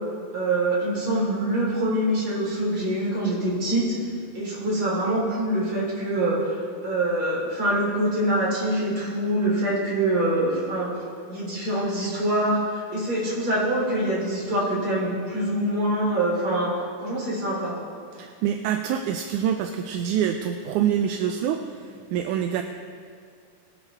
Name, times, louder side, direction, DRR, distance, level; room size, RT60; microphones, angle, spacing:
voice 1, 0.3-3.9 4.3-10.9 11.3-16.7 17.0-17.7, right 1 dB, 40° right, -5 dB, 4.6 m, -25 dB
voice 2, 18.2-22.6, right 9 dB, 80° right, 6 dB, 2.0 m, -26 dB
22.5 x 9.2 x 3.5 m, 2.2 s
omnidirectional pair, 3.7 m